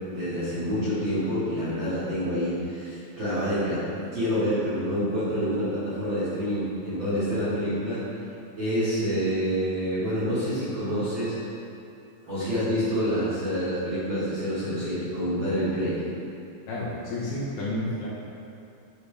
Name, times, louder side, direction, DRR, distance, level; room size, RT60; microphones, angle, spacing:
voice 1, 0.1-3.8 4.1-8.0 8.6-11.3 12.2-15.9, equal, 45° right, -14 dB, 1.8 m, -27 dB
voice 2, 16.7-18.1, left 1 dB, 70° left, -7 dB, 2.2 m, -30 dB
8.4 x 4.5 x 3.3 m, 2.6 s
omnidirectional pair, 4.2 m